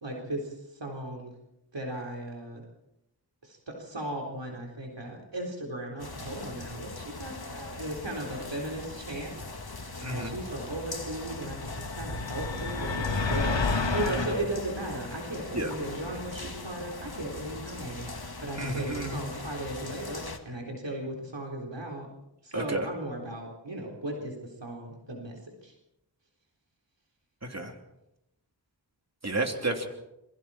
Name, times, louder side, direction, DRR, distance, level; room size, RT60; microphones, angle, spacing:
voice 1, 0.0-1.3 1.7-2.6 3.4-9.3 9.6-11.6 11.9-22.1 22.4-25.7, right 1 dB, 80° right, 0 dB, 4.1 m, -36 dB
sound 1, 6.0-20.4, left 3 dB, 60° left, 2.1 m, -41 dB
sound 2, 11.5-14.4, left 3 dB, 90° left, 2.1 m, -29 dB
voice 2, 18.6-19.2 22.5-22.9 27.5-27.7 29.2-29.9, right 2 dB, 35° right, 3 dB, 3.2 m, -31 dB
28.0 x 22.5 x 4.4 m, 0.87 s
wide cardioid pair, 50°, 43 cm